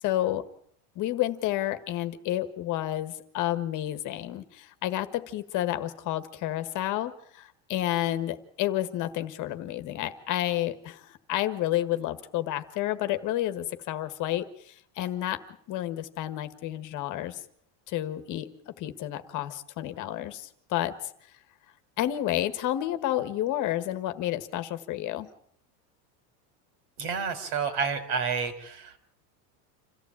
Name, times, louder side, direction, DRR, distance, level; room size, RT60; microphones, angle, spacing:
voice 1, 0.0-0.4 0.9-15.4 15.7-17.4 17.9-21.1 22.0-25.3, left 13 dB, 40° left, 11 dB, 1.5 m, -30 dB
voice 2, 27.0-29.0, right 5 dB, 55° right, 11 dB, 4.2 m, -30 dB
27.0 x 14.5 x 8.8 m, 0.65 s
supercardioid pair, 155°, 46 cm